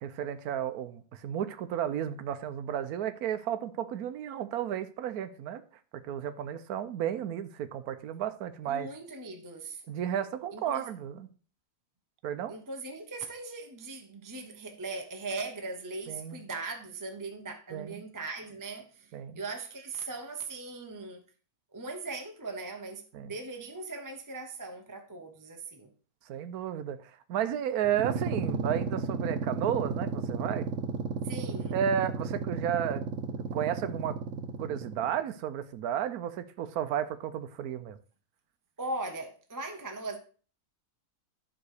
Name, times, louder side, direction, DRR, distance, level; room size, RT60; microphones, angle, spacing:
voice 1, 0.0-5.6 5.9-8.9 9.9-11.3 12.2-12.5 16.1-16.4 17.7-18.0 19.1-19.4 23.1-23.3 26.3-30.7 31.7-33.0 33.4-38.0, right 9 dB, 80° right, 1.2 m, -33 dB
voice 2, 8.6-9.8 10.5-10.9 12.5-21.2 21.7-25.9 31.2-31.8 38.8-40.2, right 3 dB, 15° right, 0.9 m, -39 dB
sound 1, 27.8-35.2, right 4 dB, 55° right, 1.2 m, -34 dB
11.0 x 3.9 x 6.5 m
omnidirectional pair, 1.6 m